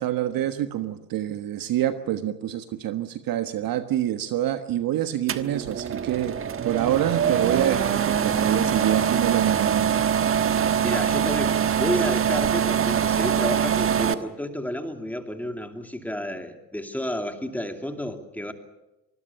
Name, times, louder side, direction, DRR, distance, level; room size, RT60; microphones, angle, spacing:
voice 1, 0.0-6.4 6.6-10.0, right 12 dB, 45° right, 9 dB, 1.4 m, -26 dB
sound 1, 5.3-14.1, right 8 dB, 25° right, 1.3 m, -23 dB
voice 2, 10.8-18.5, equal, 5° left, 5 dB, 2.7 m, -31 dB
25.0 x 21.0 x 6.9 m, 1.0 s
hypercardioid pair, 90°, 50 cm